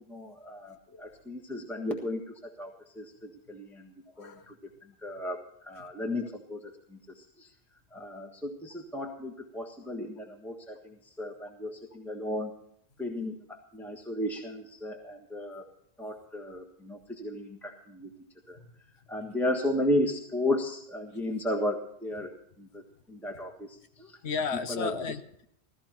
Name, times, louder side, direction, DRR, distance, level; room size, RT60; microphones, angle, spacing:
voice 1, 0.1-3.9 4.2-4.5 5.0-7.5 7.9-12.5 13.0-15.6 16.0-18.1 18.5-18.6 19.1-22.3 22.6-24.2 24.7-24.9, left 1 dB, ahead, 1 dB, 1.4 m, -34 dB
voice 2, 4.1-4.5 18.5-18.7 24.2-25.4, left 5 dB, 85° left, 9 dB, 1.3 m, -35 dB
15.5 x 14.0 x 4.4 m, 0.69 s
omnidirectional pair, 1.1 m